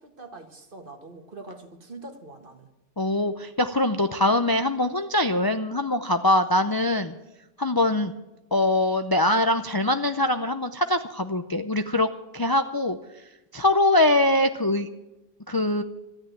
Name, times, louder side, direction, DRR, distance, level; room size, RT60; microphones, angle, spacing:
voice 1, 0.0-2.7, right 2 dB, 50° right, 6 dB, 1.7 m, -43 dB
voice 2, 3.0-7.1 7.6-8.1 8.5-12.1 12.3-13.0 13.5-14.9 15.5-15.8, left 1 dB, 25° left, 8 dB, 0.5 m, -23 dB
13.5 x 10.5 x 9.1 m, 1.0 s
omnidirectional pair, 1.2 m